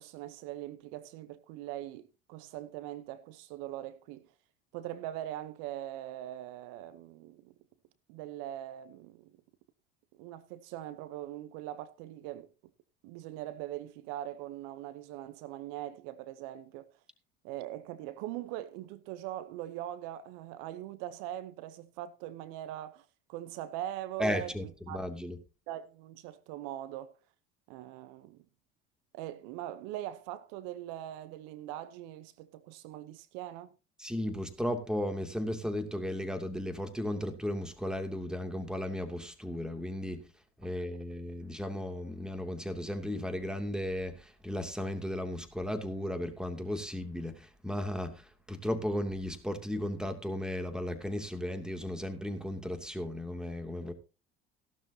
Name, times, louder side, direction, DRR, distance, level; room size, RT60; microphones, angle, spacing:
voice 1, 0.0-4.3 4.7-7.5 8.1-9.3 10.2-12.5 13.0-16.9 17.4-24.5 24.9-25.0 25.7-27.2 27.7-28.4 29.1-33.7, right 13 dB, 70° right, 0.9 m, -41 dB
voice 2, 24.2-25.4 34.0-40.2 40.6-53.9, left 1 dB, ahead, 2.6 m, -35 dB
16.0 x 12.0 x 2.8 m
hypercardioid pair, 75°, 32 cm